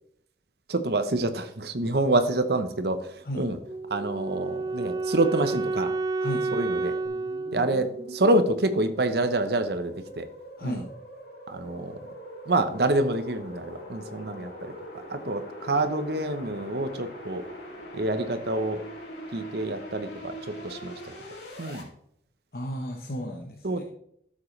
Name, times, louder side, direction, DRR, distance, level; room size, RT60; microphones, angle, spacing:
voice 1, 0.7-3.6 3.9-5.9 6.5-6.9 7.5-10.3 10.6-10.8 11.5-12.0 12.5-17.5 17.9-18.8 19.3-20.9 21.6-21.8 23.6-23.8, right 2 dB, 65° right, 9 dB, 0.9 m, -27 dB
Wind instrument woodwind instrument, 3.7-8.7, right 3 dB, 20° right, 0.3 m, -30 dB
sound 1, 7.0-21.8, equal, 90° left, 3.5 m, -42 dB
voice 2, 10.6-10.9 22.5-23.8, equal, 55° left, 2 dB, 0.9 m, -33 dB
12.5 x 7.4 x 3.3 m, 0.70 s
head